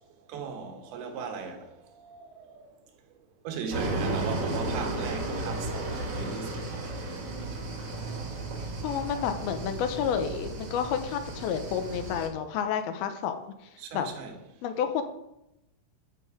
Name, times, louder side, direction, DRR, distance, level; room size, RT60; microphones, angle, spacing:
voice 1, 0.3-2.7 3.4-6.9 13.8-14.4, right 5 dB, 80° right, 3.2 m, -38 dB
sound 1, 3.7-12.3, right 2 dB, 50° right, 1.3 m, -34 dB
voice 2, 8.8-13.4 13.9-14.1 14.6-15.0, left 8 dB, 85° left, 2.7 m, -30 dB
13.0 x 5.5 x 4.9 m
omnidirectional pair, 4.4 m